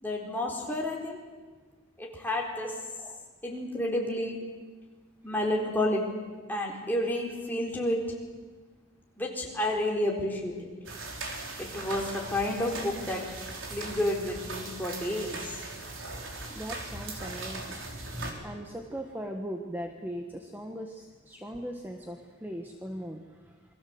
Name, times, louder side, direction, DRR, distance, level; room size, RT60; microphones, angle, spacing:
voice 1, 0.0-1.2 2.0-2.7 3.4-4.4 5.2-6.0 6.5-8.0 9.2-10.7 11.6-13.2 13.7-15.5, left 1 dB, 10° left, -1 dB, 4.2 m, -30 dB
sound 1, 10.8-18.3, right 2 dB, 70° right, 4.5 m, -39 dB
voice 2, 16.5-17.8 18.4-23.7, equal, 10° right, 3 dB, 1.4 m, -39 dB
28.5 x 22.5 x 8.0 m, 1.4 s
head